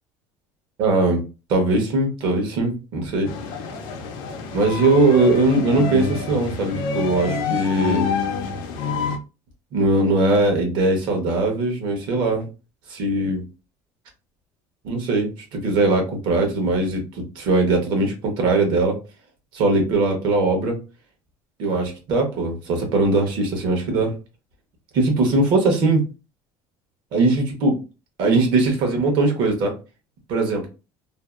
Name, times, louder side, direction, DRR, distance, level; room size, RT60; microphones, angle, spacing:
voice 1, 0.8-1.2 1.5-3.3 4.5-8.1 9.7-12.4 12.9-13.4 14.8-19.0 19.5-20.8 21.6-24.1 24.9-26.0 27.1-27.8 28.2-29.7 30.3-30.7, right 2 dB, 55° right, 3 dB, 0.9 m, -20 dB
sound 1, 3.3-9.2, left 5 dB, 55° left, 0.5 m, -27 dB
2.6 x 2.3 x 2.3 m, 0.30 s
cardioid pair, 165°, 9 cm